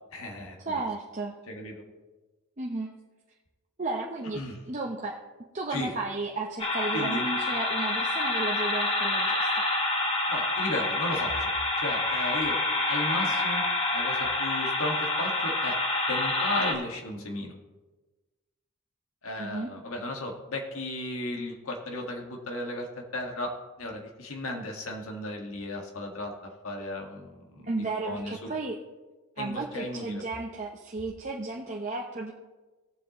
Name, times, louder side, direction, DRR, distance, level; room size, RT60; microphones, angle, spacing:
voice 1, 0.1-0.6 1.5-1.8 4.3-4.6 5.7-5.9 6.9-7.2 10.3-12.6 12.9-13.6 13.9-15.7 16.1-17.5 19.2-22.9 23.1-23.5 23.8-26.3 26.6-27.7 28.0-28.5 29.4-30.2, left 1 dB, 75° left, 1 dB, 1.7 m, -35 dB
voice 2, 0.6-1.3 2.6-2.9 3.8-4.4 4.7-5.2 5.5-9.7 19.4-19.7 27.6-28.8 29.4-32.3, right 3 dB, 35° right, -2 dB, 0.8 m, -33 dB
sound 1, 6.6-16.7, left 2 dB, 25° left, 1.1 m, -27 dB
18.0 x 7.5 x 3.0 m, 1.2 s
head